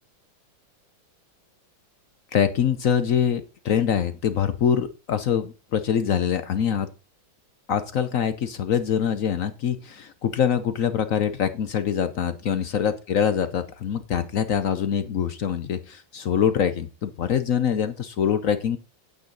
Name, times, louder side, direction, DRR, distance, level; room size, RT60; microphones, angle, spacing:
voice 1, 2.3-6.9 7.7-18.8, left 8 dB, 65° left, 11 dB, 0.8 m, -24 dB
8.9 x 8.1 x 3.9 m, 0.29 s
omnidirectional pair, 2.2 m